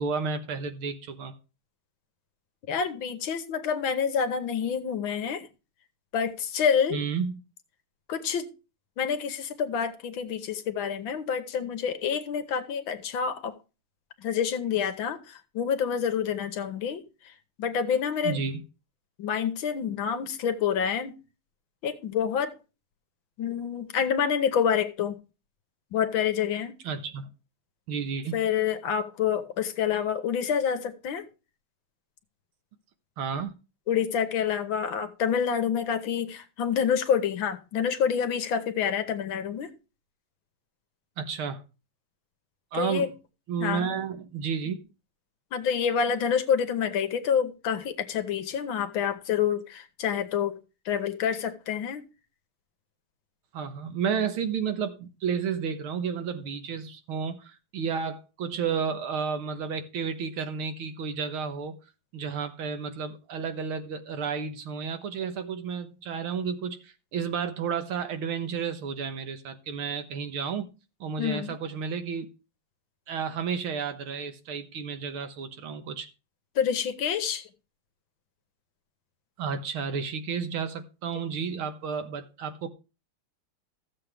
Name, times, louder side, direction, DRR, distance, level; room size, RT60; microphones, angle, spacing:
voice 1, 0.0-1.3 6.9-7.4 18.2-18.6 26.8-27.3 27.9-28.4 33.2-33.5 41.2-41.6 42.7-43.1 43.5-44.8 53.5-61.7 62.1-70.7 71.0-72.3 73.1-76.1 79.4-82.7, right 6 dB, 75° right, 2.0 m, -32 dB
voice 2, 2.7-5.5 6.1-7.0 8.1-8.5 9.0-13.5 14.2-17.0 17.6-18.4 19.2-21.1 21.8-22.5 23.4-25.2 25.9-26.7 28.3-31.3 33.9-39.7 42.7-43.1 43.6-44.0 45.5-50.6 50.8-52.0 71.2-71.5 76.6-77.5, left 7 dB, 70° left, 1.7 m, -27 dB
14.5 x 7.5 x 3.4 m
omnidirectional pair, 2.4 m